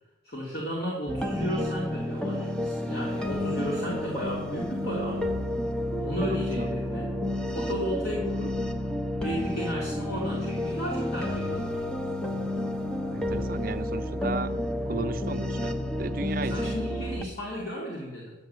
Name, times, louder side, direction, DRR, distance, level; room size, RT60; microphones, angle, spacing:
voice 1, 0.2-5.3 6.0-7.1 7.5-8.6 9.2-11.8 16.5-18.3, equal, 55° left, 3.3 m, -34 dB
sound 1, 1.1-17.2, left 1 dB, 5° left, 0.8 m, -30 dB
voice 2, 13.1-14.6 14.8-16.9, right 3 dB, 50° right, 0.7 m, -35 dB
12.0 x 7.8 x 7.9 m
head